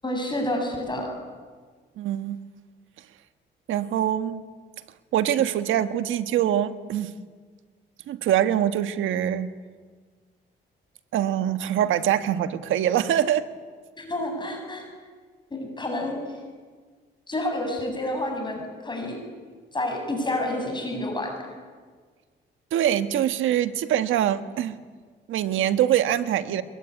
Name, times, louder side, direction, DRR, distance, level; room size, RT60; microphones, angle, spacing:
voice 1, 0.0-1.2 14.0-14.8 15.5-16.2 17.3-19.2 19.7-21.5, left 1 dB, 25° left, 2 dB, 7.8 m, -29 dB
voice 2, 2.0-2.4 3.7-4.4 5.1-7.1 8.1-9.5 11.1-13.5 22.7-24.8 25.3-26.6, right 11 dB, 80° right, 10 dB, 1.5 m, -24 dB
23.5 x 21.5 x 9.9 m, 1.5 s
cardioid pair, 90°, 20 cm